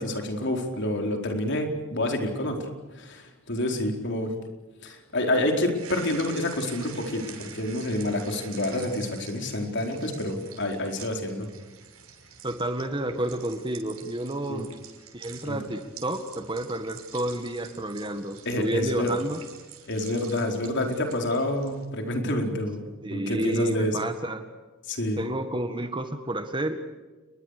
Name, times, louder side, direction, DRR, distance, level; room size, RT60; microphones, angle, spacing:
voice 1, 0.0-2.6 2.9-4.3 4.8-11.5 14.5-14.6 15.5-15.6 18.4-19.1 19.8-24.0 24.9-25.2, left 1 dB, 55° left, 3 dB, 4.6 m, -28 dB
sound 1, 5.7-21.8, right 8 dB, 90° right, 6.0 m, -47 dB
voice 2, 12.4-14.7 15.1-19.4 23.0-24.4 25.2-26.8, right 1 dB, 25° right, 8 dB, 1.8 m, -30 dB
29.5 x 22.0 x 6.8 m, 1.2 s
head